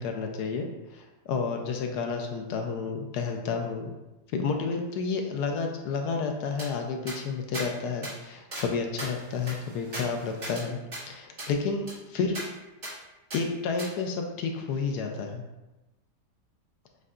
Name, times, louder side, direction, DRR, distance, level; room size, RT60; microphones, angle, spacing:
voice 1, 0.0-3.9 4.3-12.4 13.3-15.4, left 5 dB, 75° left, 3 dB, 1.1 m, -31 dB
sound 1, 6.6-6.7 7.1-7.2 7.5-7.7 8.0-8.1 8.5-8.7 9.0-10.6 10.9-11.0 11.4-11.5 11.9-12.0 12.4-12.5 12.8-12.9 13.3-13.4 13.8-13.9, right 1 dB, 45° right, 2.0 m, -38 dB
7.4 x 2.6 x 2.4 m, 1.0 s
omnidirectional pair, 1.8 m